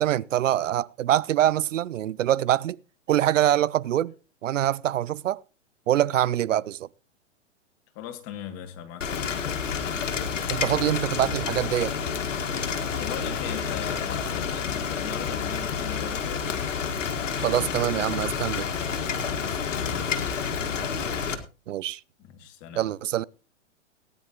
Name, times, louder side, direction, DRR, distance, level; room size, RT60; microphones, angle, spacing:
voice 1, 0.0-2.8 3.1-4.1 4.4-5.4 5.9-6.9 10.5-11.9 17.4-18.6 21.7-22.0 22.7-23.2, right 12 dB, 85° right, 0.5 m, -24 dB
voice 2, 7.9-9.7 13.0-16.5 19.3-20.3 22.2-22.9, left 9 dB, 40° left, 2.3 m, -39 dB
Rain, 9.0-21.3, left 6 dB, 80° left, 1.9 m, -29 dB
18.0 x 10.0 x 3.0 m
hypercardioid pair, 120°, 37 cm